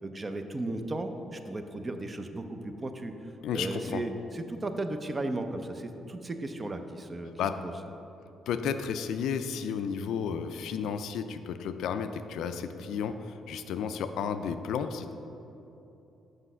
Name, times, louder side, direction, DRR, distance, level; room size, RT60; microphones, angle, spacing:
voice 1, 0.0-3.1 3.5-7.3 7.6-7.7, right 2 dB, 30° right, 7 dB, 0.5 m, -35 dB
voice 2, 3.4-4.0 7.4-7.5 8.5-15.1, left 7 dB, 80° left, 9 dB, 0.3 m, -32 dB
6.1 x 4.9 x 5.5 m, 3.0 s
cardioid pair, 90°, 0 cm